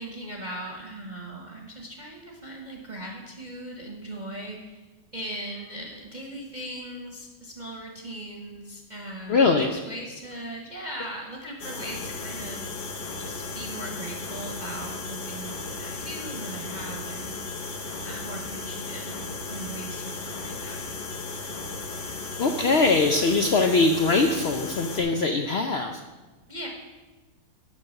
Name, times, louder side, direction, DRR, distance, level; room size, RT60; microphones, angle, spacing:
voice 1, 0.0-4.8 5.1-12.7 13.2-17.4 18.0-20.8 26.5-26.7, right 1 dB, 35° right, 0 dB, 0.9 m, -39 dB
voice 2, 9.3-9.7 11.4-11.5 22.4-26.0, left 3 dB, 80° left, 5 dB, 0.5 m, -22 dB
sound 1, 11.6-25.0, left 3 dB, 45° left, 0.9 m, -35 dB
7.5 x 6.1 x 6.4 m, 1.2 s
omnidirectional pair, 1.8 m